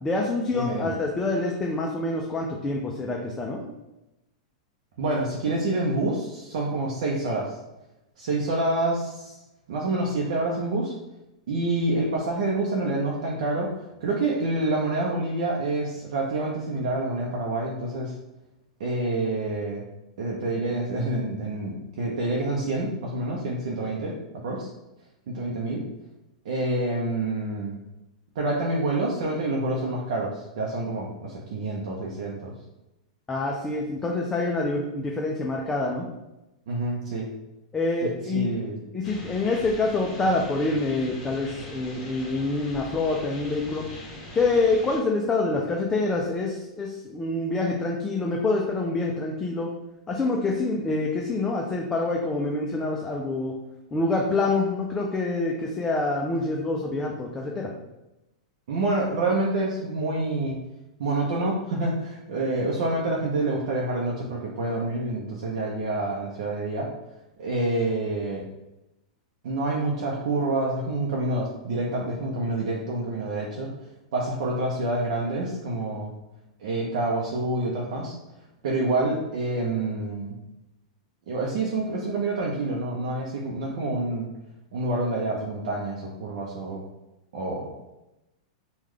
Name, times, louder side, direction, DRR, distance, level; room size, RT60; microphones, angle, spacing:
voice 1, 0.0-3.6 33.3-36.1 37.7-38.5 38.9-43.9 44.3-49.7 50.1-53.6 53.9-57.7, left 3 dB, 15° left, -1 dB, 0.4 m, -26 dB
voice 2, 0.5-0.9 5.0-7.6 8.2-9.3 9.7-10.9 11.5-13.7 14.0-18.1 18.8-19.8 20.2-24.1 24.4-24.7 25.3-25.8 26.4-27.8 28.4-32.5 36.7-37.3 38.2-38.8 58.7-60.6 61.0-66.9 67.4-68.5 69.4-73.7 74.1-76.1 76.6-78.1 78.6-80.4 81.3-84.3 84.7-86.8 87.3-87.7, right 2 dB, 70° right, -3 dB, 0.6 m, -27 dB
sound 1, 39.0-45.0, left 1 dB, 30° left, 1.3 m, -41 dB
3.1 x 2.3 x 3.6 m, 0.94 s
hypercardioid pair, 140°, 4 cm